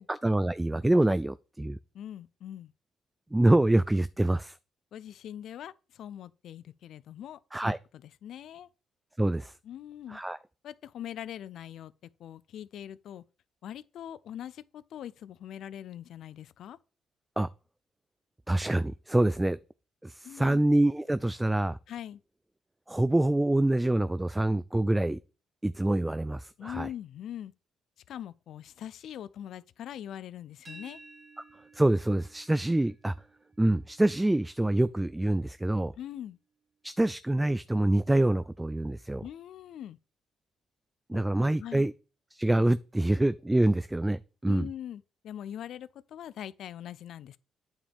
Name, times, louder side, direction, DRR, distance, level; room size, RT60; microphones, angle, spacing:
voice 1, 0.1-1.8 3.3-4.6 7.5-7.8 9.2-9.5 10.1-10.4 17.4-17.5 18.5-19.6 20.0-21.8 22.9-25.2 25.6-26.9 31.7-33.1 33.6-35.9 36.8-39.2 41.1-41.9 42.3-44.7, right 1 dB, 10° right, 0.3 m, -26 dB
voice 2, 1.9-2.7 4.9-8.7 9.6-10.2 10.6-11.9 12.2-13.2 13.6-16.8 20.2-20.6 21.9-22.2 26.6-27.5 28.1-31.0 36.0-36.4 39.2-40.0 41.1-41.2 41.6-41.9 44.4-47.4, left 10 dB, 75° left, 0.4 m, -42 dB
sound 1, 30.6-36.4, right 3 dB, 35° right, 2.1 m, -56 dB
8.8 x 7.1 x 3.5 m
cardioid pair, 90°, 0 cm